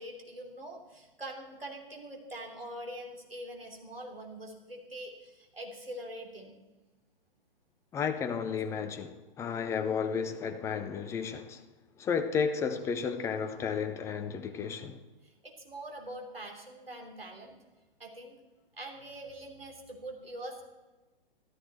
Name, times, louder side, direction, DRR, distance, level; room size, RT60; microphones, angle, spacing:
voice 1, 0.0-6.5 15.4-17.6 18.0-18.4 18.8-20.6, right 1 dB, 80° right, 3.2 m, -44 dB
voice 2, 7.9-11.6 12.0-15.0, left 6 dB, 10° left, 0.6 m, -32 dB
13.5 x 13.0 x 4.4 m
figure-of-eight pair, 115°, 29 cm